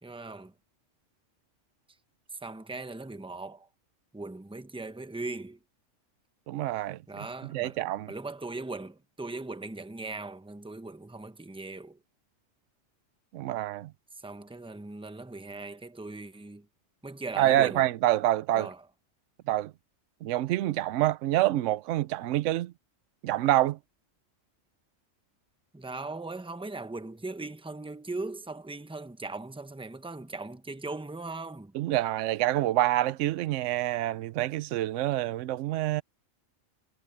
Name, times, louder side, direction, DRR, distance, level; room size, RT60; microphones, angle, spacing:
voice 1, 0.0-0.5 2.4-3.7 4.1-5.6 7.1-7.8 8.1-12.0 14.2-16.7 17.0-17.8 18.5-18.8 25.7-31.7, right 3 dB, 5° right, 0.8 m, -39 dB
voice 2, 6.5-7.0 7.4-8.1 13.3-13.9 17.4-18.7 19.5-19.7 20.2-22.7 23.2-23.8 31.7-36.0, right 14 dB, 75° right, 0.9 m, -27 dB
omnidirectional pair, 1.3 m